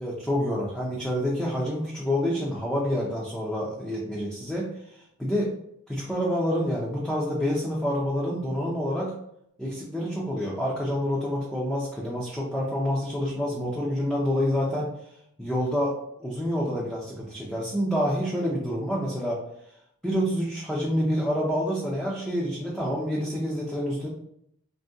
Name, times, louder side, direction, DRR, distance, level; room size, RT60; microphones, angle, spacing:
voice 1, 0.0-5.5 5.9-9.2 9.6-14.9 15.4-19.4 20.0-24.1, equal, ahead, -5 dB, 0.4 m, -28 dB
2.5 x 2.1 x 3.5 m, 0.74 s
head